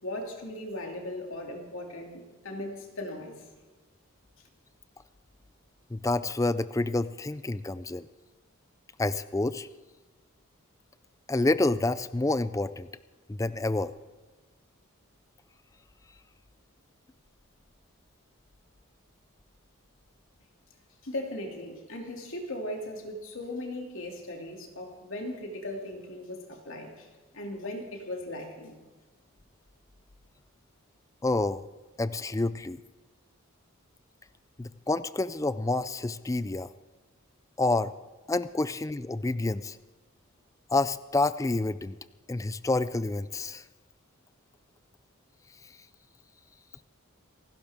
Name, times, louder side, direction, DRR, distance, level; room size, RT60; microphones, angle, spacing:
voice 1, 0.0-3.5 21.0-28.7, left 1 dB, 65° left, 2 dB, 2.6 m, -38 dB
voice 2, 5.9-8.1 9.0-9.7 11.3-12.9 13.3-13.9 31.2-31.6 32.0-32.8 34.6-36.7 37.6-37.9 38.3-39.8 40.7-42.0 42.3-43.6, left 2 dB, 15° left, 15 dB, 0.3 m, -28 dB
27.5 x 12.0 x 3.6 m, 1.3 s
head